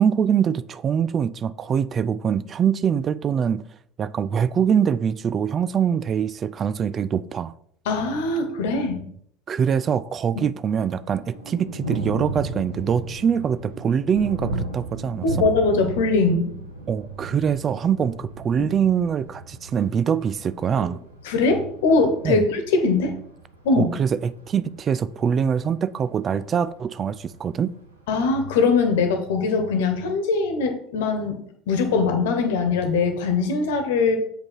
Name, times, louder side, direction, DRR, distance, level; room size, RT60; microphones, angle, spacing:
voice 1, 0.0-3.7 4.0-7.5 9.5-15.3 16.9-21.0 22.2-22.4 23.8-27.7, right 7 dB, 35° right, 0.3 m, -23 dB
voice 2, 7.8-9.0 15.2-16.5 21.2-23.2 23.6-23.9 28.1-31.4 31.7-34.2, left 4 dB, 65° left, 1.3 m, -21 dB
Thunder, 10.6-28.6, right 2 dB, 85° right, 1.2 m, -36 dB
7.0 x 5.2 x 4.5 m
figure-of-eight pair, 65°, 0 cm